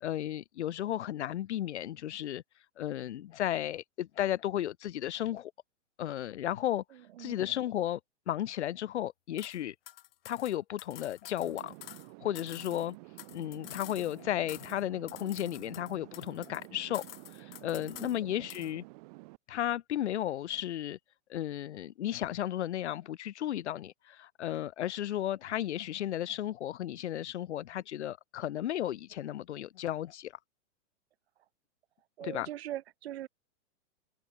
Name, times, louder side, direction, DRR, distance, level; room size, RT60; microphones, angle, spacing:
voice 1, 0.0-2.4 2.8-5.5 6.0-6.8 7.2-8.0 8.3-9.8 10.3-11.7 12.2-13.0 13.3-17.0 17.4-18.8 19.5-21.0 21.3-30.3 32.2-32.5, left 12 dB, 65° left, 1.6 m, -34 dB
voice 2, 6.9-7.4 17.7-18.1 32.2-33.3, right 13 dB, 55° right, 2.3 m, -42 dB
sound 1, 9.4-9.6 9.9-12.1 12.3-14.2 14.5-14.8 15.1-16.7 16.9-18.2 18.5-18.7, left 14 dB, 50° left, 1.3 m, -49 dB
sound 2, 11.4-19.4, right 26 dB, 30° right, 2.0 m, -51 dB
supercardioid pair, 170°, 36 cm